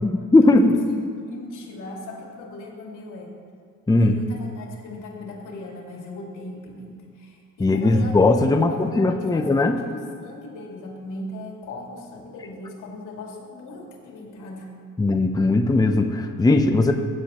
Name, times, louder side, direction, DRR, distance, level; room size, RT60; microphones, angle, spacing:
voice 1, 0.0-0.8 3.9-4.2 7.6-9.8 15.0-16.9, left 2 dB, 15° left, 5 dB, 0.6 m, -18 dB
voice 2, 0.8-3.3 4.0-14.8, left 2 dB, 80° left, -1 dB, 2.4 m, -38 dB
15.5 x 9.6 x 3.0 m, 2.3 s
cardioid pair, 90°, 30 cm